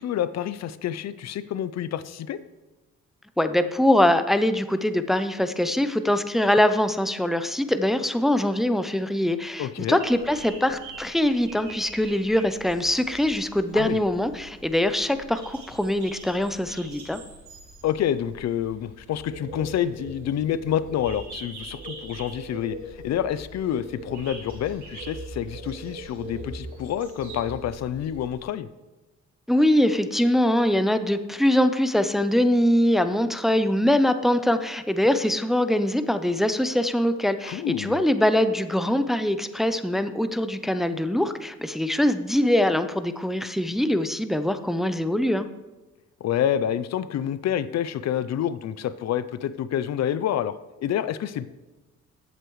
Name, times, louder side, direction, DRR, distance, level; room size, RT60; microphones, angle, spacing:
voice 1, 0.0-2.4 9.6-10.0 13.7-14.0 17.8-28.7 37.4-38.0 46.2-50.5 50.8-51.5, left 10 dB, 60° left, 15 dB, 0.5 m, -28 dB
voice 2, 3.4-17.2 29.5-45.5, left 1 dB, ahead, 10 dB, 0.5 m, -23 dB
sound 1, 10.0-28.4, right 2 dB, 70° right, 3.6 m, -42 dB
14.5 x 8.1 x 3.2 m, 1.1 s
cardioid pair, 90°, 30 cm